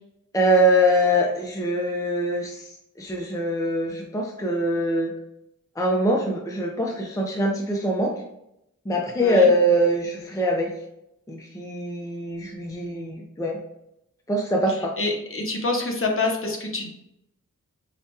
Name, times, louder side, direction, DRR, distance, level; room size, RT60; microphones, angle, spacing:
voice 1, 0.3-2.7 3.0-5.1 5.8-8.1 8.9-10.7 11.3-13.6 14.3-14.9, equal, 10° left, 0 dB, 0.5 m, -23 dB
voice 2, 9.2-9.5 15.0-16.9, left 3 dB, 40° left, 0 dB, 0.8 m, -26 dB
4.9 x 2.2 x 2.8 m, 0.83 s
wide cardioid pair, 70°, 32 cm